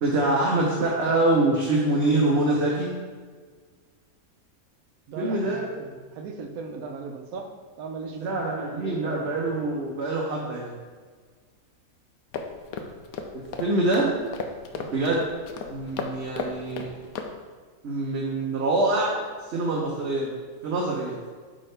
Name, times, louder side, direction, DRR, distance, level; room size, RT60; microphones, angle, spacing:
voice 1, 0.0-2.9 5.2-5.7 8.1-10.7 13.3-14.1 14.9-15.2 15.7-16.9 17.8-19.1 19.5-20.3 20.6-21.2, right 2 dB, 55° right, -3 dB, 1.0 m, -25 dB
voice 2, 5.1-7.5 7.8-9.3 14.7-14.9, right 4 dB, 80° right, 4 dB, 1.2 m, -38 dB
sound 1, 12.3-17.3, left 5 dB, 85° left, 1.1 m, -35 dB
8.6 x 3.7 x 3.3 m, 1.5 s
omnidirectional pair, 1.5 m